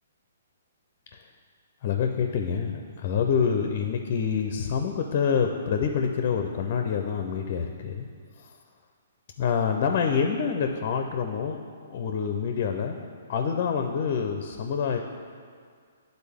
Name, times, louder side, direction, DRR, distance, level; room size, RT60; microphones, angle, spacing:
voice 1, 1.8-8.1 8.4-8.5 9.4-11.6 11.9-13.0 13.3-15.0, left 6 dB, 45° left, 4 dB, 0.5 m, -27 dB
11.0 x 4.0 x 3.5 m, 2.1 s
figure-of-eight pair, 130°, 0 cm